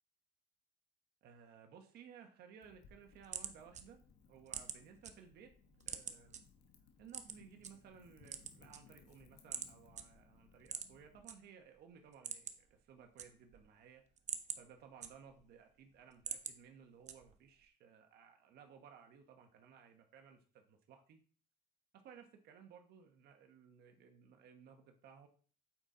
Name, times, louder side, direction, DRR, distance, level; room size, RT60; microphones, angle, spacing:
voice 1, 1.2-4.0 4.3-5.5 5.9-6.4 7.0-14.0 14.5-21.2 21.9-25.3, right 7 dB, 70° right, 4 dB, 1.2 m, -59 dB
Wind / Fire, 2.6-11.2, left 6 dB, 85° left, 1.2 m, -65 dB
sound 1, 2.9-5.1 5.5-6.4 7.1-7.7 8.2-9.1 9.5-9.7 10.0-10.1 10.6-11.3 11.7-11.8 12.1-12.7 13.0-13.7 14.1-15.5 15.9-16.6 17.1-17.5, right 7 dB, 45° right, 0.8 m, -44 dB
8.7 x 4.2 x 3.8 m, 0.42 s
cardioid pair, 110°, 17 cm